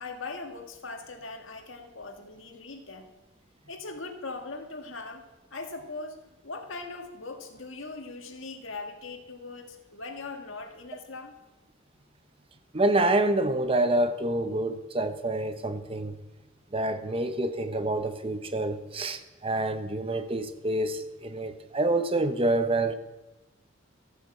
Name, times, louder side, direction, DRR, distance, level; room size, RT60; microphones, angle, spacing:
voice 1, 0.0-3.1 3.7-5.2 5.5-11.3, left 3 dB, 90° left, 1.8 m, -40 dB
voice 2, 12.7-16.1 16.7-22.9, right 2 dB, 30° right, 0.9 m, -27 dB
13.5 x 9.3 x 7.7 m
head